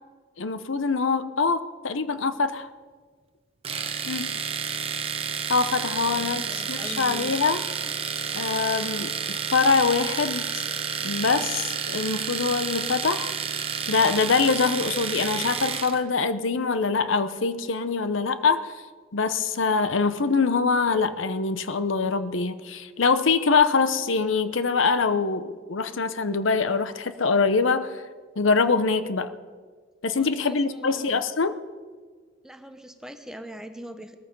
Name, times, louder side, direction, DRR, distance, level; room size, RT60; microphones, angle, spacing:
voice 1, 0.4-2.7 4.1-4.3 5.5-7.6 8.3-10.6 11.0-13.3 13.9-18.7 19.1-28.0 28.4-29.3 30.0-31.6, left 4 dB, 75° left, 12 dB, 0.8 m, -24 dB
Domestic sounds home sounds, 3.6-16.0, right 6 dB, 30° right, 1.0 m, -30 dB
voice 2, 6.0-7.3 30.1-31.2 32.4-34.2, equal, 5° right, 7 dB, 0.9 m, -42 dB
19.5 x 14.0 x 5.3 m, 1.5 s
head